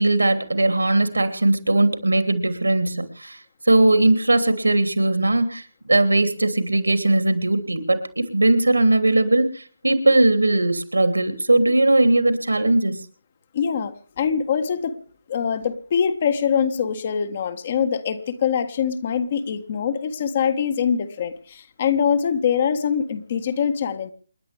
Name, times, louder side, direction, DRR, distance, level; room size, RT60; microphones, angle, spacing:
voice 1, 0.0-3.4 3.7-13.0, right 2 dB, 70° right, 8 dB, 3.0 m, -19 dB
voice 2, 13.5-15.0 15.3-24.1, left 7 dB, 35° left, 9 dB, 1.6 m, -23 dB
28.5 x 11.0 x 3.5 m, 0.40 s
figure-of-eight pair, 150°, 0 cm